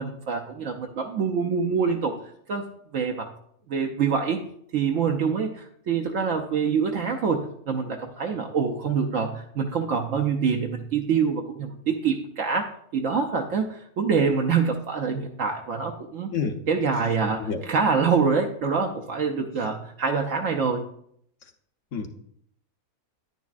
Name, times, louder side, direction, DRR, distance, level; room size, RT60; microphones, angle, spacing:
voice 1, 0.0-2.2 2.5-2.7 2.9-3.3 3.7-4.4 4.7-16.3 16.7-20.9, right 5 dB, 65° right, 4 dB, 1.0 m, -25 dB
voice 2, 16.3-16.6 17.4-17.6 21.9-22.1, left 5 dB, 60° left, 6 dB, 1.1 m, -27 dB
10.0 x 9.4 x 2.4 m, 0.69 s
omnidirectional pair, 1.6 m